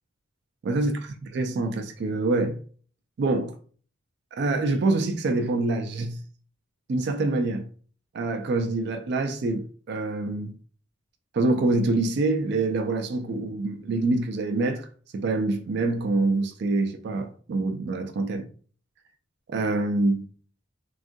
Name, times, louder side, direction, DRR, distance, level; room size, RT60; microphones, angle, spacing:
voice 1, 0.6-1.0 1.3-2.6 3.2-3.5 4.3-6.2 6.9-7.7 8.1-10.5 11.3-14.9 15.1-18.4 19.5-20.3, right 2 dB, 60° right, 0.3 m, -25 dB
3.5 x 2.3 x 2.6 m
head